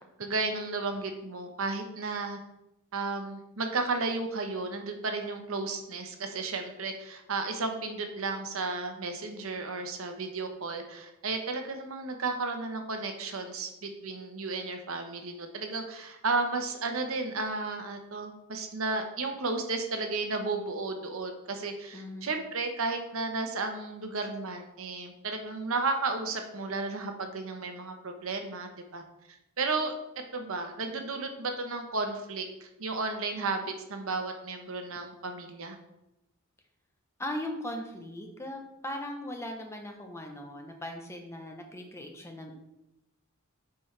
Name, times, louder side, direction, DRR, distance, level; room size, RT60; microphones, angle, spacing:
voice 1, 0.2-2.4 2.9-29.0 29.6-29.9 30.3-35.8, right 3 dB, 65° right, 5 dB, 0.9 m, -33 dB
voice 2, 21.9-22.3 37.2-42.5, left 1 dB, 10° left, 3 dB, 0.7 m, -39 dB
8.4 x 4.5 x 3.3 m, 0.89 s
head